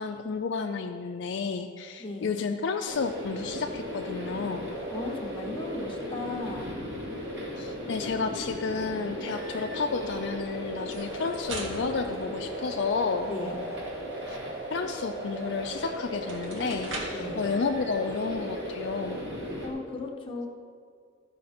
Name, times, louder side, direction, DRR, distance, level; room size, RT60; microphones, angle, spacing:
voice 1, 0.0-4.7 7.6-13.3 14.3-14.4 14.7-19.2, left 4 dB, 65° left, 4 dB, 0.4 m, -31 dB
voice 2, 2.0-2.4 4.9-6.8 13.3-13.6 17.1-17.5 19.6-20.5, left 2 dB, 25° left, -1 dB, 1.1 m, -36 dB
sound 1, 2.9-19.7, equal, 60° right, 2.1 m, -36 dB
sound 2, 10.8-13.2 15.6-15.7 16.1-17.3, right 2 dB, 80° right, 1.4 m, -41 dB
13.5 x 5.7 x 4.2 m, 2.2 s
head